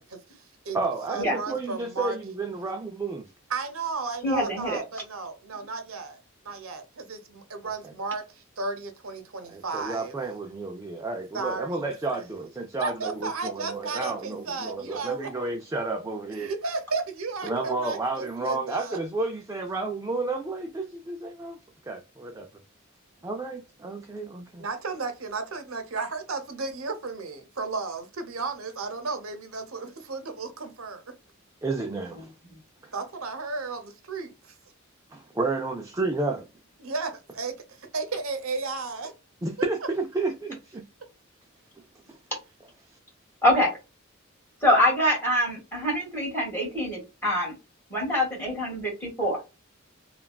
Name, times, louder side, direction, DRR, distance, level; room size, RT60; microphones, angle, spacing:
voice 1, 0.0-0.8 1.1-2.2 3.5-6.2 6.4-10.2 11.3-11.9 12.8-15.3 16.3-19.0 24.6-31.0 32.9-34.5 36.8-39.1, right 4 dB, 85° right, 0.7 m, -34 dB
voice 2, 0.7-3.3 7.6-7.9 9.5-16.5 17.4-21.6 21.9-22.5 23.2-24.6 31.6-32.3 32.8-32.9 35.1-36.5 39.4-40.9 42.1-42.2, right 3 dB, 15° right, 0.3 m, -31 dB
voice 3, 4.2-4.8 43.4-43.7 44.6-47.5 47.9-49.4, left 1 dB, 10° left, 1.6 m, -24 dB
3.3 x 2.3 x 2.2 m
head